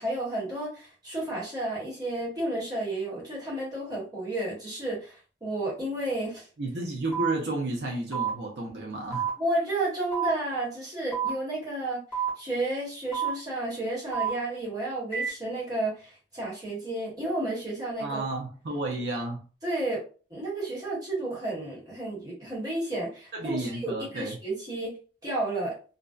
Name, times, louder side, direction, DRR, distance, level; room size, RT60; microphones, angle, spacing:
voice 1, 0.0-6.5 9.4-12.0 12.4-18.2 19.6-20.0 20.3-24.9 25.2-25.7, right 1 dB, 20° right, -5 dB, 1.1 m, -32 dB
voice 2, 6.6-9.3 18.0-19.4 23.3-24.4, right 2 dB, 70° right, 0 dB, 0.5 m, -32 dB
sound 1, 7.1-7.3 8.1-8.3 9.1-9.3 10.1-10.3 11.1-11.3 12.1-12.3 13.1-13.3 14.1-14.3 15.1-15.3, right 8 dB, 10° left, 1.0 m, -28 dB
2.6 x 2.1 x 2.3 m, 0.37 s
head